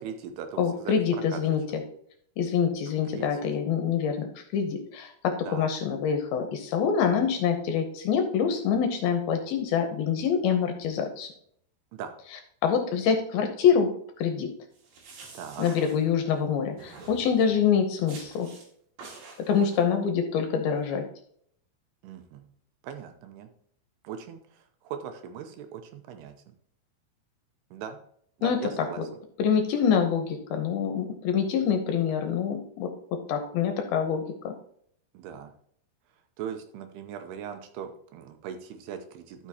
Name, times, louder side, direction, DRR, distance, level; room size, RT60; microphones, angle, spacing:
voice 1, 0.0-1.0 1.3-1.4 3.1-3.3 5.4-5.7 11.9-12.1 15.3-15.7 22.0-22.5 22.8-23.5 24.0-26.3 27.7-28.0 28.4-29.0 35.1-35.5 36.4-39.5, right 7 dB, 80° right, 7 dB, 2.6 m, -39 dB
voice 2, 0.6-1.6 2.4-11.3 12.6-13.9 14.2-14.5 15.6-18.5 19.5-21.0 28.4-28.9 29.4-34.5, left 7 dB, 75° left, 5 dB, 2.5 m, -26 dB
sound 1, 14.7-16.4 16.8-17.6 18.1-18.7 19.0-19.8, right 4 dB, 60° right, 3.3 m, -47 dB
13.0 x 5.9 x 2.8 m, 0.64 s
omnidirectional pair, 5.0 m